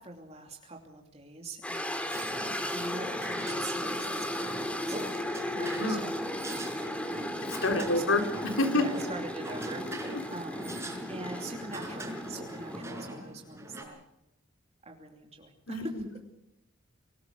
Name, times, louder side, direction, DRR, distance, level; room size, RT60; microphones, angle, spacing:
voice 1, 0.0-2.1 2.7-8.2 8.7-10.8 11.1-14.0 14.8-16.0, right 2 dB, 30° right, 2 dB, 2.8 m, -44 dB
sound 1, 1.6-12.8, left 1 dB, 5° left, 2.3 m, -35 dB
sound 2, 2.1-13.8, right 1 dB, 15° right, 5.0 m, -42 dB
voice 2, 5.5-6.0 7.6-8.8 10.1-10.2 15.7-15.9, left 2 dB, 80° left, 6 dB, 3.4 m, -28 dB
25.5 x 19.5 x 6.6 m, 0.84 s
head